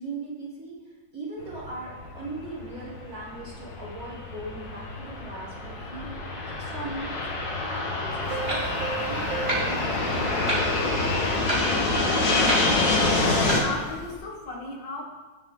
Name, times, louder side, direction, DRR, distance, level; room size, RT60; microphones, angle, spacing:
voice 1, 0.0-12.3, right 2 dB, 50° right, -7 dB, 3.8 m, -40 dB
Fixed-wing aircraft airplane, 1.4-13.6, left 2 dB, 60° left, 1.9 m, -27 dB
Clock, 8.2-14.1, right 1 dB, 25° right, 2.4 m, -33 dB
Piano, 8.3-11.6, right 6 dB, 70° right, 0.4 m, -37 dB
voice 2, 13.1-15.0, left 3 dB, 80° left, 0 dB, 2.3 m, -36 dB
17.5 x 6.4 x 3.8 m, 1.3 s
omnidirectional pair, 2.0 m